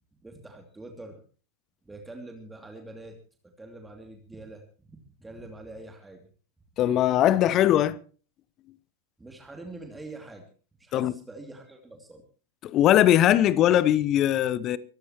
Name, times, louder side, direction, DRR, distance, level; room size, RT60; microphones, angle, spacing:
voice 1, 0.2-1.2 1.8-3.2 3.4-6.3 9.2-10.5 10.8-12.2, right 2 dB, 10° right, 2.7 m, -44 dB
voice 2, 6.8-8.0 10.9-11.1 12.6-14.8, left 12 dB, 35° left, 1.0 m, -20 dB
24.0 x 15.0 x 3.0 m
figure-of-eight pair, 90°, 0 cm